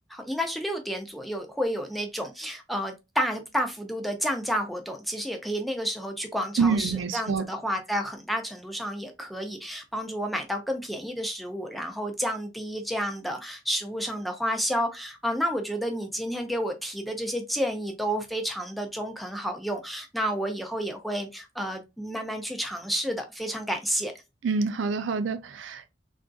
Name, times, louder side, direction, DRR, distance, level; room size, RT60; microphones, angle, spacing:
voice 1, 0.1-24.1, equal, ahead, 0.5 m, -30 dB
voice 2, 6.6-7.4 24.4-25.9, right 5 dB, 75° right, 0.4 m, -26 dB
3.5 x 2.5 x 2.2 m
head